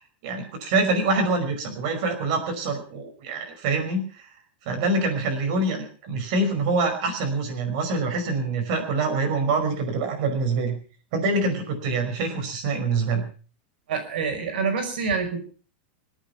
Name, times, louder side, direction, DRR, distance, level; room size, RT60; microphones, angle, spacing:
voice 1, 0.2-4.0 4.7-10.8 11.1-13.3, right 3 dB, 40° right, 4 dB, 5.3 m, -25 dB
voice 2, 13.9-15.4, right 5 dB, 60° right, 5 dB, 5.2 m, -26 dB
26.0 x 9.1 x 5.9 m, 0.40 s
supercardioid pair, 180°, 6 cm